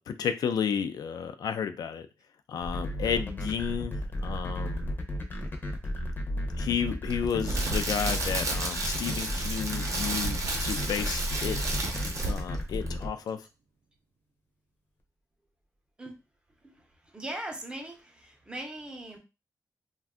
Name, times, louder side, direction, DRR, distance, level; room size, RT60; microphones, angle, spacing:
voice 1, 0.0-2.1 2.5-4.9 6.6-11.6 12.2-13.4, left 7 dB, 80° left, 0.3 m, -32 dB
sound 1, 2.6-13.1, left 1 dB, 30° left, 0.6 m, -33 dB
voice 2, 6.0-6.3 16.0-16.2 16.6-19.2, right 1 dB, 15° right, 0.6 m, -40 dB
Crackle, 7.1-12.6 12.9-13.0, right 2 dB, 50° right, 0.6 m, -32 dB
sound 2, 10.1-12.8, right 2 dB, 90° right, 0.4 m, -39 dB
2.5 x 2.2 x 3.5 m
wide cardioid pair, 150°, 7 cm